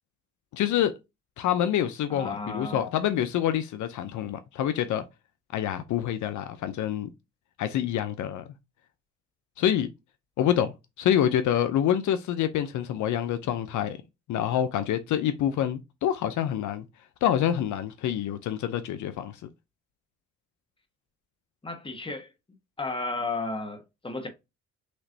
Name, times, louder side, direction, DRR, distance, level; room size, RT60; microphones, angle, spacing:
voice 1, 0.5-0.9 1.4-5.0 5.5-7.1 7.6-8.5 9.6-9.9 10.4-14.0 14.3-16.8 17.2-19.5, left 10 dB, 75° left, 0.7 m, -27 dB
voice 2, 2.1-2.8 21.6-22.3 22.8-24.3, left 3 dB, 15° left, 1.3 m, -33 dB
6.3 x 3.0 x 2.7 m
cardioid pair, 90°, 30 cm